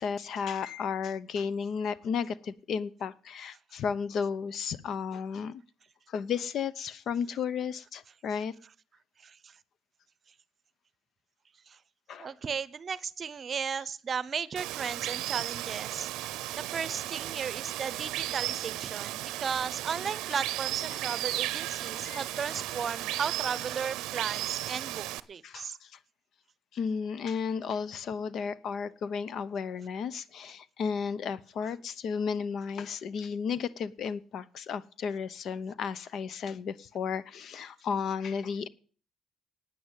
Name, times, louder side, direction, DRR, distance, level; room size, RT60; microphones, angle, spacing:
voice 1, 0.0-5.6 6.1-8.5 12.1-12.3 20.9-21.0 22.0-22.5 25.4-26.0 26.7-38.7, left 6 dB, 65° left, 0.7 m, -33 dB
voice 2, 9.2-9.6 11.7-11.8 12.2-16.1 16.7-25.8, right 6 dB, 45° right, 0.7 m, -35 dB
Water, 14.6-25.2, right 16 dB, 85° right, 0.6 m, -35 dB
9.5 x 9.4 x 9.2 m
supercardioid pair, 80°, 0 cm